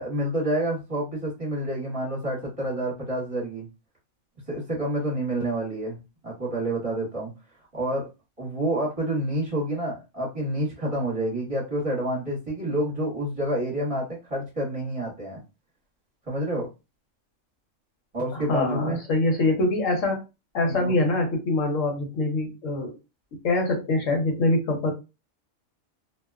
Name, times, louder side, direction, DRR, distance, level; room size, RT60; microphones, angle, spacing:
voice 1, 0.0-3.7 4.5-7.3 7.7-8.1 8.4-15.4 16.3-16.7 18.1-19.0 20.6-20.9, right 1 dB, 30° right, -5 dB, 0.9 m, -28 dB
voice 2, 18.5-20.2 20.5-23.0 23.4-24.9, left 2 dB, 85° left, 3 dB, 1.1 m, -24 dB
2.5 x 2.1 x 2.3 m, 0.27 s
omnidirectional pair, 1.3 m